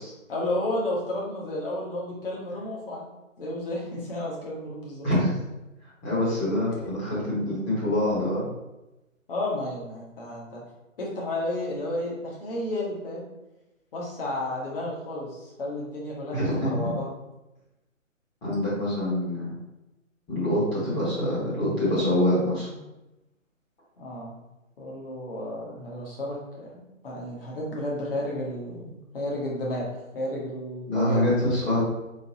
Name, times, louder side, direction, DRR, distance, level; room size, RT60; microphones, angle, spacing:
voice 1, 0.3-3.1 3.4-5.1 9.3-10.6 11.0-13.2 13.9-17.2 24.0-24.3 24.8-31.3, left 1 dB, 45° left, -4 dB, 1.4 m, -32 dB
voice 2, 5.0-5.4 6.0-8.5 16.3-16.9 18.4-19.5 20.3-22.8 30.9-31.8, left 1 dB, 15° left, -8 dB, 1.1 m, -25 dB
3.9 x 3.5 x 2.9 m, 0.99 s
figure-of-eight pair, 140°, 40 cm